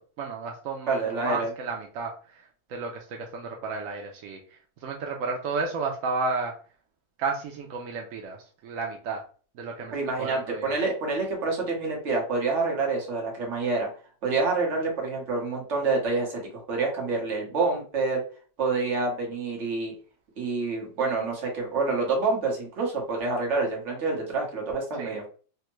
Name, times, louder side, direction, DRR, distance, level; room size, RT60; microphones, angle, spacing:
voice 1, 0.0-6.5 7.2-9.2 9.5-10.7 25.0-25.2, right 4 dB, 75° right, 1 dB, 0.7 m, -33 dB
voice 2, 0.9-1.5 9.9-13.9 14.2-16.4 16.7-18.2 18.6-19.9 20.4-25.3, right 3 dB, 50° right, 0 dB, 1.2 m, -27 dB
3.4 x 2.1 x 3.0 m, 0.40 s
omnidirectional pair, 1.9 m